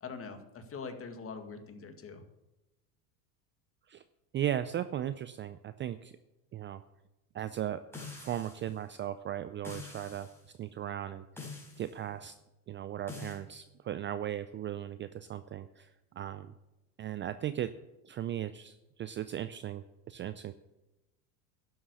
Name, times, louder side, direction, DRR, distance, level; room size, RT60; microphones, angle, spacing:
voice 1, 0.0-2.2, left 5 dB, 30° left, 7 dB, 2.0 m, -43 dB
voice 2, 4.3-6.1 6.5-6.8 7.3-7.8 8.2-10.3 10.6-11.5 11.8-12.4 12.7-16.5 17.0-17.7 18.0-20.5, right 11 dB, 25° right, 12 dB, 0.4 m, -37 dB
sound 1, 7.9-8.7 9.6-10.4 11.4-11.9 13.1-13.4, left 3 dB, 5° left, 4.5 m, -45 dB
11.5 x 7.8 x 8.3 m, 0.97 s
supercardioid pair, 100°, 46 cm